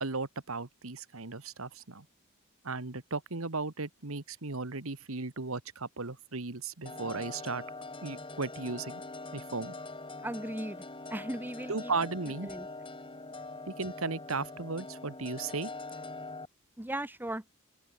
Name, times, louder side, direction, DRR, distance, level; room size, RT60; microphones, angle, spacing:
voice 1, 0.0-2.0 2.6-7.6 8.0-9.0 9.3-9.7 11.7-12.5 13.7-15.7, right 3 dB, 75° right, 1.6 m, -36 dB
sound 1, 6.9-16.5, left 2 dB, 25° left, 6.0 m, -43 dB
voice 2, 10.2-10.8 11.1-11.9 12.5-12.7 16.8-17.4, right 1 dB, 10° right, 1.1 m, -37 dB
open air
head